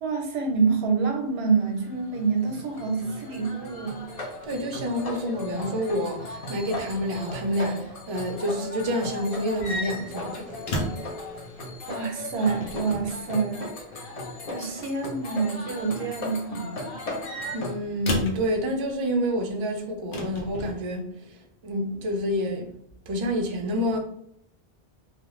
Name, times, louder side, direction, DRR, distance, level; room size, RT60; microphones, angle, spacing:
voice 1, 0.0-4.1 11.9-13.7 14.5-16.9, right 4 dB, 90° right, 0.9 m, -27 dB
sound 1, 1.6-17.7, left 2 dB, 45° left, 0.6 m, -37 dB
voice 2, 4.4-10.6 17.5-22.7 23.1-24.0, equal, 50° right, 0.3 m, -28 dB
sound 2, 9.5-11.2 12.4-13.2 14.7-15.1 16.9-18.5 20.1-20.8, equal, 75° left, 0.8 m, -33 dB
2.4 x 2.0 x 3.0 m
omnidirectional pair, 1.1 m